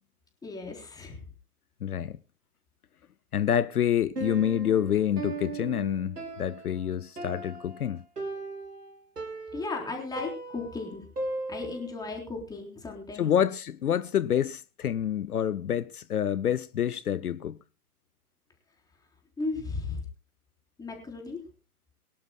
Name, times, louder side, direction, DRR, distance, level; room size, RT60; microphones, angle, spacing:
voice 1, 0.4-1.3 9.5-11.1 11.5-13.4 19.4-20.0 20.8-21.4, left 3 dB, 10° left, 3.8 m, -36 dB
voice 2, 1.8-2.2 3.3-8.0 13.2-17.6, left 9 dB, 75° left, 0.7 m, -27 dB
Piano, 4.2-12.0, right 2 dB, 85° right, 3.2 m, -38 dB
23.5 x 11.5 x 2.2 m
figure-of-eight pair, 120°, 46 cm